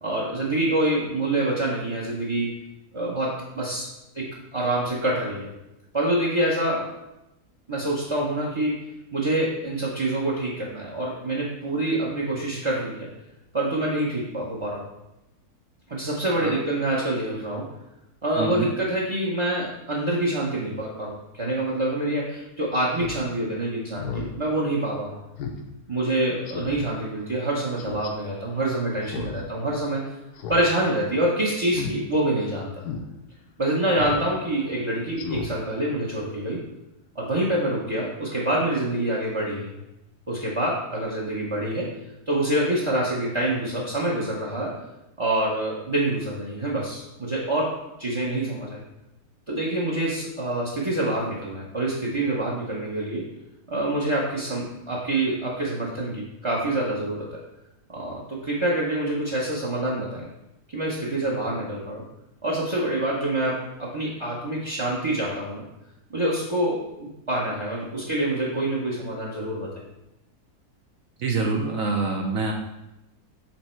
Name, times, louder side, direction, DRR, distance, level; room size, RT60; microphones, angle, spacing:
voice 1, 0.0-2.5 2.9-3.9 4.1-5.5 5.9-6.9 7.7-8.8 9.1-13.1 13.5-14.9 15.9-17.7 18.2-25.2 25.9-30.0 30.5-32.7 33.6-36.6 37.1-39.8 40.3-41.9 42.3-44.7 45.2-48.8 49.5-53.3 53.7-57.3 57.9-60.2 60.7-62.0 62.4-65.6 66.1-69.7, right 1 dB, 25° right, -4 dB, 0.6 m, -26 dB
voice 2, 18.4-18.7 71.2-72.5, right 3 dB, 65° right, 1 dB, 1.0 m, -26 dB
Speech synthesizer, 22.9-23.2 23.6-23.7 24.0-24.3 24.7-24.8 25.4-25.6 25.9-26.0 26.5-26.8 27.8-28.1 29.0-29.4 29.7-29.8 30.4-30.7 31.0-31.2 31.7-31.9 32.4-32.5 32.8-33.0 34.0-34.3 34.6-34.7 35.1-35.5 35.8-35.9, left 6 dB, 85° left, 1.3 m, -33 dB
7.2 x 3.3 x 4.4 m, 0.92 s
omnidirectional pair, 1.6 m